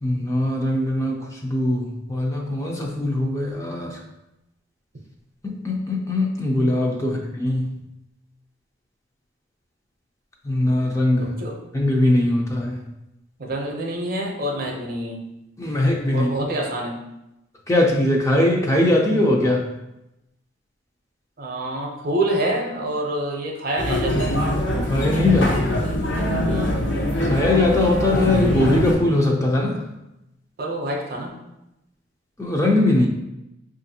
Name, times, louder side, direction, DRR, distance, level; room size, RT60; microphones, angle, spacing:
voice 1, 0.0-4.0 5.4-7.7 10.4-11.4 11.7-12.8 15.6-16.3 17.7-19.7 24.8-25.8 27.2-29.8 32.4-33.1, left 1 dB, 15° left, 0 dB, 0.4 m, -21 dB
voice 2, 11.2-11.6 13.4-15.2 16.1-16.9 21.4-24.4 26.4-26.7 30.6-31.4, right 1 dB, 50° right, 1 dB, 0.6 m, -27 dB
sound 1, 23.8-28.9, left 1 dB, 65° left, 0.7 m, -23 dB
5.0 x 2.5 x 2.7 m, 0.90 s
head